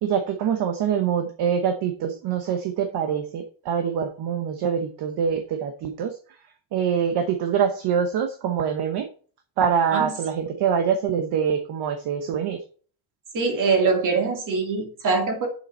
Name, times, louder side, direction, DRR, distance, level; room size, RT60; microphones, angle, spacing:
voice 1, 0.0-6.2 6.7-9.1 9.6-12.6, right 7 dB, 55° right, 7 dB, 1.0 m, -24 dB
voice 2, 13.3-15.5, right 4 dB, 40° right, 2 dB, 2.5 m, -23 dB
7.1 x 6.8 x 4.3 m, 0.43 s
cardioid pair, 160°, 46 cm